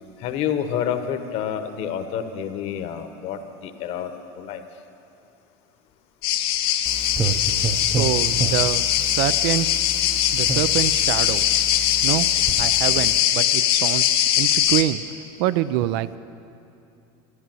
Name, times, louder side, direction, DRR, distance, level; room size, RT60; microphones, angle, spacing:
voice 1, 0.2-4.1 4.4-4.6, left 8 dB, 55° left, 8 dB, 1.1 m, -28 dB
sound 1, 6.2-14.8, left 11 dB, 85° left, 0.9 m, -21 dB
sound 2, 6.8-13.2, right 4 dB, 20° right, 0.6 m, -31 dB
voice 2, 8.0-9.7 10.0-11.4 12.0-12.3 12.6-15.0 15.4-16.2, right 14 dB, 70° right, 15 dB, 0.5 m, -25 dB
13.0 x 11.0 x 7.6 m, 2.7 s
supercardioid pair, 125°, 12 cm